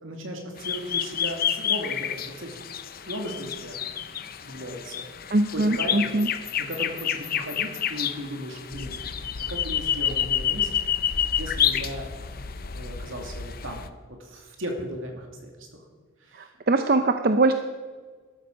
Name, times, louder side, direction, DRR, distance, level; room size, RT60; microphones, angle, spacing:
voice 1, 0.0-2.6 3.1-3.8 4.2-5.1 5.5-6.2 6.6-9.0 9.5-10.7 11.4-12.0 12.7-15.5 16.3-16.5, equal, 70° right, 2 dB, 2.6 m, -36 dB
sound 1, 0.6-13.9, left 9 dB, 45° left, 0.6 m, -29 dB
voice 2, 5.3-6.3 16.3-17.5, right 2 dB, 45° right, 7 dB, 0.6 m, -22 dB
13.5 x 12.5 x 5.4 m, 1.5 s
head